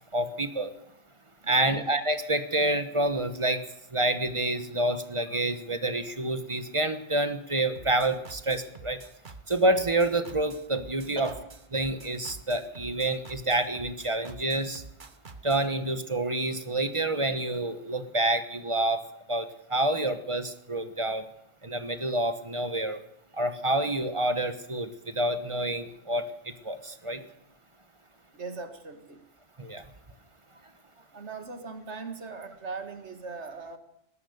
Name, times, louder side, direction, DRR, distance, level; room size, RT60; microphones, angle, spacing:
voice 1, 0.1-0.7 1.4-3.6 3.9-9.0 9.5-11.3 11.7-14.8 15.4-19.0 19.3-21.3 21.6-23.0 23.3-27.2 29.6-29.8, right 1 dB, 25° right, 10 dB, 1.2 m, -28 dB
voice 2, 1.4-1.8 11.2-11.4 28.3-29.3 31.1-33.8, right 4 dB, 70° right, 8 dB, 2.0 m, -40 dB
sound 1, 7.8-15.7, right 3 dB, 45° right, 1.2 m, -47 dB
19.5 x 11.0 x 6.6 m, 0.82 s
omnidirectional pair, 1.2 m